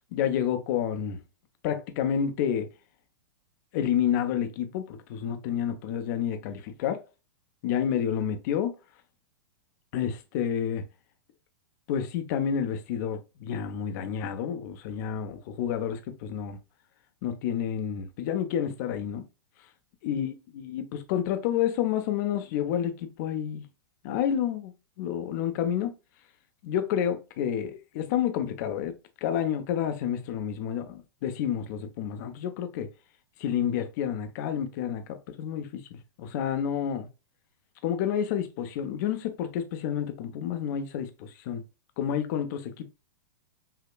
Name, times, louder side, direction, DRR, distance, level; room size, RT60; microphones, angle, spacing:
voice 1, 0.1-1.2 1.6-2.7 3.7-7.0 7.6-8.7 9.9-10.8 11.9-16.6 17.2-19.2 20.0-23.6 24.0-25.9 26.6-28.9 29.2-32.9 33.4-37.1 37.8-41.6 42.0-42.8, left 9 dB, 50° left, 0.8 m, -29 dB
5.7 x 2.8 x 2.3 m
hypercardioid pair, 105°, 12 cm